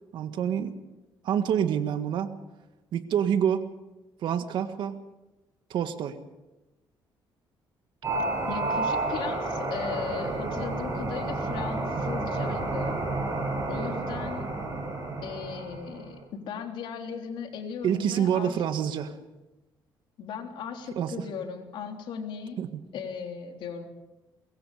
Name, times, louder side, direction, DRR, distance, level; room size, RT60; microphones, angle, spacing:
voice 1, 0.1-0.8 1.2-2.4 2.9-3.7 4.2-5.0 5.7-6.2 17.8-19.2 20.9-21.2 22.6-22.8, right 9 dB, 70° right, 9 dB, 1.7 m, -27 dB
sound 1, 8.0-16.0, right 2 dB, 35° right, 8.0 m, -30 dB
voice 2, 8.5-13.0 13.7-14.5 15.2-18.6 20.2-22.6 22.9-23.9, left 6 dB, 75° left, 3 dB, 3.4 m, -37 dB
23.0 x 22.0 x 5.0 m, 1.1 s
cardioid pair, 115°, 8 cm